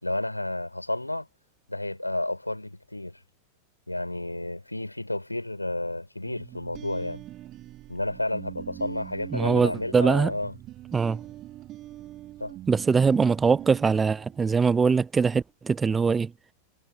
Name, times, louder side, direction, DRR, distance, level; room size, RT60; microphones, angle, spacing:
voice 1, 0.0-1.3 1.7-3.2 3.9-7.2 7.9-10.5 12.4-12.5, left 1 dB, 85° left, 5.4 m, -31 dB
sound 1, 6.3-15.0, right 14 dB, 35° right, 2.1 m, -43 dB
voice 2, 9.3-10.3 10.9-11.2 12.7-16.3, right 5 dB, 15° right, 0.6 m, -22 dB
figure-of-eight pair, 90°, 0 cm